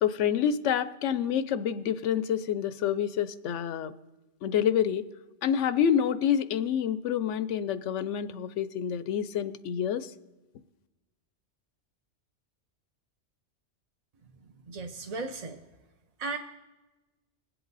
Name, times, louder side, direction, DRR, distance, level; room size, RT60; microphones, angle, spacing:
voice 1, 0.0-3.9 4.4-5.0 5.4-10.1, left 9 dB, 85° left, 15 dB, 0.9 m, -27 dB
voice 2, 14.7-15.6 16.2-16.4, right 3 dB, 40° right, 4 dB, 0.7 m, -35 dB
21.0 x 7.8 x 4.0 m, 1.1 s
omnidirectional pair, 1.2 m